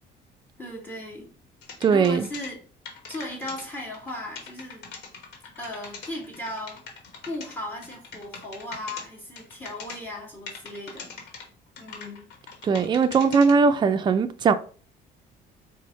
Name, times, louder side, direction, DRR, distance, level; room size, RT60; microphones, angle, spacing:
voice 1, 0.6-1.3 1.9-2.6 3.1-4.9 5.6-6.8 7.2-11.1 11.8-12.3, left 1 dB, 10° left, 1.5 m, -36 dB
sound 1, 1.6-2.5 2.9-3.6 3.9-4.1 4.4-7.5 7.8-9.0 9.4-10.0 10.5-11.4 11.8-13.5, left 5 dB, 80° left, 1.0 m, -40 dB
voice 2, 1.8-2.3 12.6-14.5, right 5 dB, 25° right, 0.4 m, -20 dB
4.4 x 2.1 x 4.0 m
cardioid pair, 110°, 17 cm